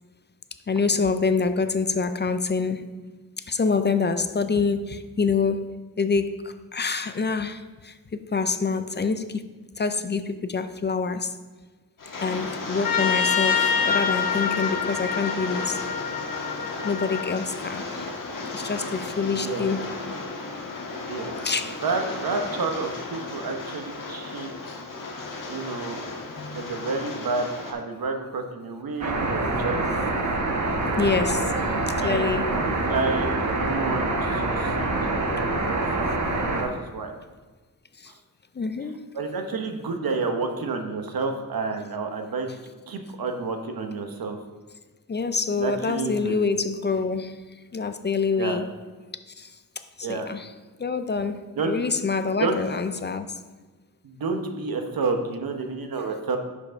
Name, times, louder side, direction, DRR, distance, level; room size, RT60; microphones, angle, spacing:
voice 1, 0.7-2.8 3.5-5.7 6.0-9.4 9.8-11.4 12.2-15.8 16.8-18.1 18.5-19.9 21.4-21.8 25.5-25.6 26.4-26.7 31.0-32.5 38.0-38.1 38.6-39.0 45.1-47.4 47.7-48.7 49.4-49.6 50.0-50.5 50.8-53.3 56.0-56.1, left 4 dB, 30° left, 10 dB, 0.4 m, -26 dB
Rain, 12.0-27.7, left 3 dB, 65° left, 1.4 m, -34 dB
Trumpet, 12.8-17.4, left 6 dB, 85° left, 0.9 m, -26 dB
voice 2, 19.2-19.7 20.9-21.3 21.8-24.5 25.5-26.0 26.5-29.9 32.0-33.3 33.6-36.1 36.6-37.1 39.1-42.6 42.9-44.4 45.6-46.3 48.4-48.6 50.0-50.3 51.6-51.8 52.4-52.6 54.0-56.4, right 4 dB, 80° right, 4 dB, 1.0 m, -30 dB
sound 1, 29.0-36.6, right 2 dB, 55° right, 1.2 m, -25 dB
6.4 x 5.6 x 5.2 m, 1.3 s
wide cardioid pair, 120°, 35 cm